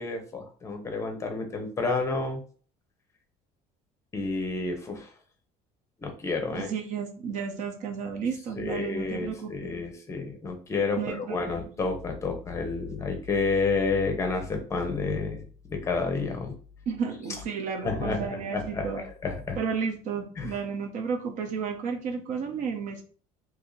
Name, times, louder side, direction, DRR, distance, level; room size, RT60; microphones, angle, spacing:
voice 1, 0.0-2.4 4.1-5.1 6.0-6.7 8.6-15.4 15.7-16.6 17.8-19.6 20.4-20.5, left 3 dB, 20° left, 4 dB, 0.8 m, -30 dB
voice 2, 6.5-9.7 10.9-11.5 16.9-19.0 19.6-23.0, right 6 dB, 55° right, 5 dB, 0.8 m, -32 dB
2.9 x 2.7 x 3.9 m, 0.42 s
cardioid pair, 150°, 15 cm